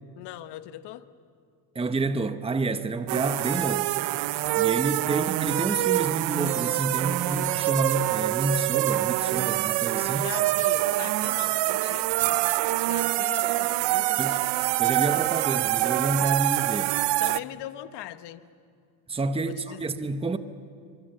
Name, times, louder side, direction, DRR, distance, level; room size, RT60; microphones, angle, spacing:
voice 1, 0.1-1.1 5.0-5.2 10.1-14.5 17.2-18.5 19.5-19.8, left 14 dB, 60° left, 1.3 m, -41 dB
voice 2, 1.7-3.9 4.5-10.3 14.2-14.4 14.8-17.0 19.1-20.4, right 3 dB, 10° right, 1.1 m, -29 dB
sound 1, 3.1-17.4, right 18 dB, 60° right, 0.8 m, -25 dB
25.5 x 23.5 x 9.1 m
supercardioid pair, 105°, 46 cm